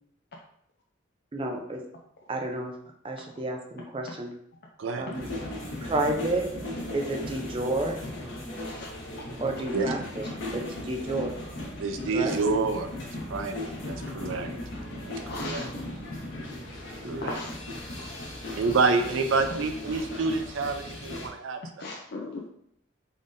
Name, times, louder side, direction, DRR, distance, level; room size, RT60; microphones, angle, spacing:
voice 1, 1.3-1.8 2.3-2.7 3.0-4.3 4.9-5.3 5.8-6.5 6.9-8.0 9.4-10.3 10.5-11.3 12.1-12.4 17.0-17.3, right 2 dB, 25° right, 3 dB, 0.5 m, -30 dB
sound 1, 5.1-21.3, left 1 dB, 80° left, 1.2 m, -37 dB
voice 2, 8.6-8.9 10.2-10.3 15.3-15.7 17.2-17.6 17.9-18.0 19.9-20.0 21.8-22.5, left 2 dB, 55° left, -1 dB, 0.4 m, -37 dB
voice 3, 11.8-12.9 13.3-13.6 13.8-14.5 15.0-15.7 17.1-17.4 18.6-21.9, right 4 dB, 85° right, 7 dB, 0.5 m, -28 dB
3.6 x 3.6 x 2.6 m, 0.71 s
head